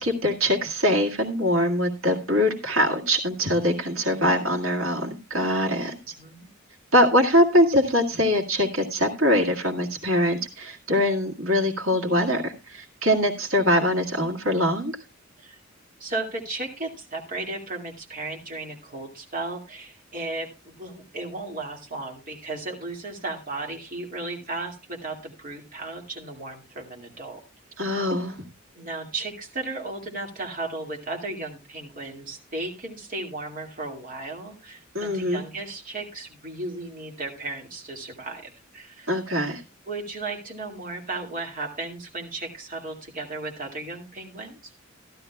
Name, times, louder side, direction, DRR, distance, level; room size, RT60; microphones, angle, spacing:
voice 1, 0.0-6.1 6.9-15.0 27.8-28.4 34.9-35.4 39.1-39.6, equal, 85° right, 2 dB, 1.9 m, -23 dB
voice 2, 6.2-6.5 15.4-15.6 16.0-27.4 28.7-39.6 39.9-44.7, right 2 dB, 40° right, 1 dB, 2.2 m, -35 dB
15.0 x 12.0 x 2.3 m, 0.26 s
head